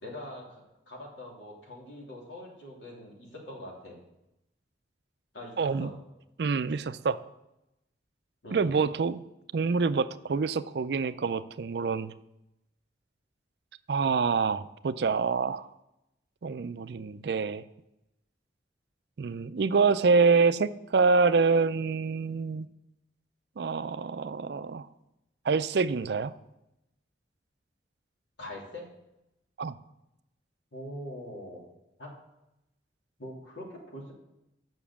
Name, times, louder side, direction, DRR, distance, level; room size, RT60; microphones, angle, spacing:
voice 1, 0.0-4.0 5.3-5.9 8.4-8.7 28.4-28.9 30.7-31.6 32.0-32.2 33.2-34.1, left 1 dB, 80° left, -3 dB, 2.9 m, -43 dB
voice 2, 5.6-5.9 6.4-7.2 8.5-9.2 9.5-12.1 13.9-15.7 16.4-17.6 19.2-22.7 23.6-24.9 25.5-26.3 29.6-29.8, right 4 dB, 60° right, 14 dB, 0.4 m, -26 dB
7.1 x 6.2 x 7.1 m, 0.89 s
head